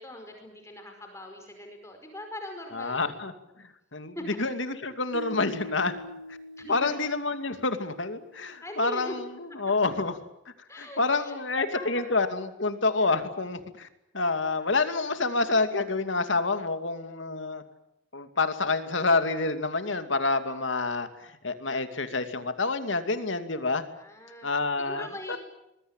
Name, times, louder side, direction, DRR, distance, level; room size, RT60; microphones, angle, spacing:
voice 1, 0.0-3.1 4.1-4.3 6.6-6.8 8.6-9.1 9.5-9.6 10.7-12.3 23.9-24.5 24.9-25.4, left 1 dB, 15° left, 4 dB, 4.9 m, -41 dB
voice 2, 2.7-5.9 6.7-10.1 10.8-13.9 14.1-17.6 18.1-23.8 24.4-25.4, left 3 dB, 70° left, 9 dB, 2.5 m, -28 dB
sound 1, 5.1-8.3, left 1 dB, 70° right, 2.0 m, -42 dB
25.5 x 21.5 x 8.9 m, 0.88 s
head